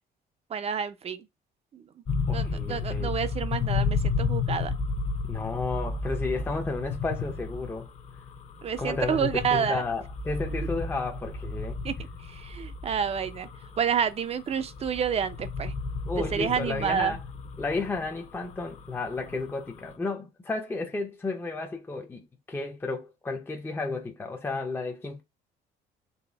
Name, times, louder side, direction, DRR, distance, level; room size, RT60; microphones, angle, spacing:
voice 1, 0.5-1.3 1.7-1.8 2.3-4.7 8.6-9.8 11.8-11.9 12.3-13.5 13.8-15.7 16.3-17.1, right 7 dB, 35° right, 0.5 m, -29 dB
sound 1, 2.1-19.9, left 4 dB, 40° left, 0.8 m, -33 dB
voice 2, 2.3-3.2 5.2-7.9 8.8-11.8 16.1-17.2 17.6-25.2, left 3 dB, 15° left, 0.6 m, -32 dB
4.2 x 2.5 x 3.3 m
cardioid pair, 110°, 17 cm